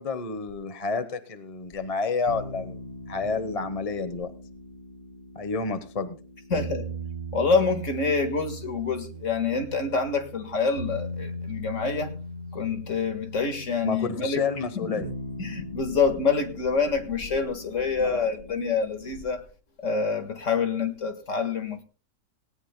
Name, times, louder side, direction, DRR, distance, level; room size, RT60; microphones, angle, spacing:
voice 1, 0.0-2.8 3.1-4.3 5.3-6.2 13.8-15.1 18.0-18.3, left 4 dB, 25° left, 11 dB, 1.0 m, -30 dB
sound 1, 2.3-19.3, right 1 dB, 45° right, 2.3 m, -39 dB
voice 2, 6.5-6.9 7.3-12.1 12.5-14.4 14.8-14.9 15.4-19.4 19.8-21.8, left 5 dB, 55° left, 7 dB, 2.0 m, -26 dB
18.5 x 18.0 x 2.2 m, 0.35 s
omnidirectional pair, 1.6 m